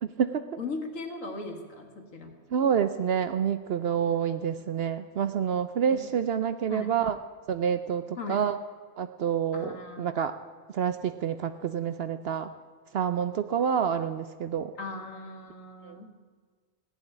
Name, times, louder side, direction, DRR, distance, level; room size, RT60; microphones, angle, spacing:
voice 1, 0.0-0.5 1.2-1.3 2.5-7.2 7.5-8.6 9.0-10.4 10.7-12.5 12.9-14.7 15.8-16.0, right 8 dB, 60° right, 11 dB, 0.6 m, -28 dB
voice 2, 0.6-2.4 4.1-4.3 5.9-6.0 6.7-6.9 8.2-8.5 9.5-10.2 14.8-16.1, left 3 dB, 65° left, 4 dB, 1.9 m, -38 dB
16.5 x 7.3 x 9.9 m, 1.5 s
omnidirectional pair, 1.4 m